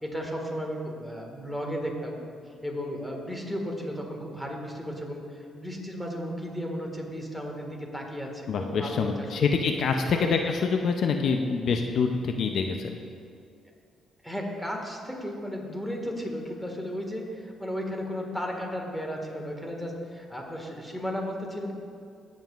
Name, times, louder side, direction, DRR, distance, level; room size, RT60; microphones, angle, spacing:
voice 1, 0.0-2.2 2.5-9.5 10.1-10.3 14.2-21.7, equal, 5° left, 0 dB, 1.7 m, -34 dB
voice 2, 8.5-13.0, left 5 dB, 65° left, 4 dB, 0.5 m, -26 dB
16.5 x 7.4 x 2.4 m, 2.4 s
cardioid pair, 90°, 0 cm